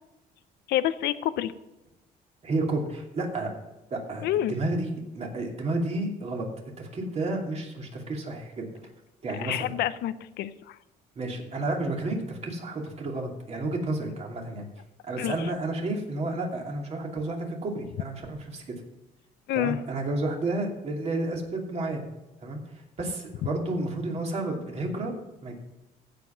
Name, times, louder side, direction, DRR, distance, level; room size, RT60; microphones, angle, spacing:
voice 1, 0.7-1.5 4.2-4.5 9.4-10.8 15.2-15.4 19.5-19.8, left 13 dB, 75° left, 14 dB, 0.7 m, -28 dB
voice 2, 2.4-3.5 3.9-6.5 6.8-8.7 9.2-9.7 11.2-14.7 15.0-18.6 19.5-22.0 22.4-22.6 23.0-25.1 25.4-25.6, right 2 dB, 40° right, 0 dB, 2.7 m, -31 dB
15.5 x 5.3 x 5.7 m, 1.0 s
cardioid pair, 110°, 17 cm